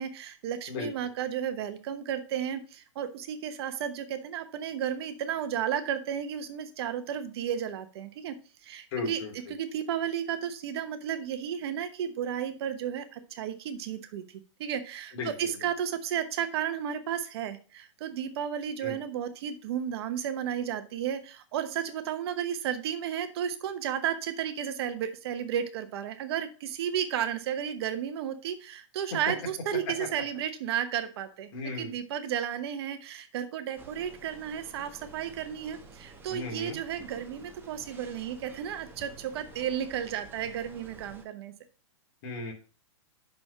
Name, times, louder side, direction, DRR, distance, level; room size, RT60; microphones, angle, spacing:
voice 1, 0.0-8.4 8.6-9.2 9.5-41.5, right 9 dB, 55° right, 10 dB, 1.0 m, -33 dB
voice 2, 8.9-9.5 15.1-15.5 18.8-19.0 30.0-30.1 31.5-31.9 36.3-36.8 42.2-42.5, left 3 dB, 50° left, 1 dB, 2.8 m, -36 dB
sound 1, 33.8-41.2, right 3 dB, 15° right, 1.0 m, -51 dB
6.0 x 5.2 x 5.9 m, 0.36 s
hypercardioid pair, 140°, 16 cm